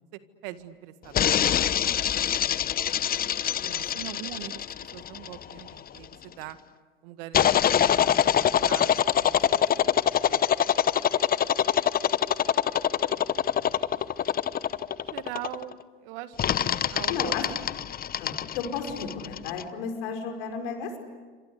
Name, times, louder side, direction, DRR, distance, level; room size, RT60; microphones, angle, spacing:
voice 1, 0.1-2.2 3.6-6.6 7.0-7.9 8.3-10.7 11.4-11.5 12.0-12.1 13.5-13.8 14.8-17.7, right 13 dB, 65° right, 11 dB, 1.8 m, -43 dB
sound 1, 1.1-6.0 7.3-15.7 16.4-19.6, left 10 dB, 30° left, 0.9 m, -24 dB
voice 2, 17.1-17.4 18.2-21.0, left 6 dB, 70° left, 4 dB, 5.6 m, -33 dB
28.0 x 26.0 x 8.2 m, 1.4 s
hypercardioid pair, 80°, 30 cm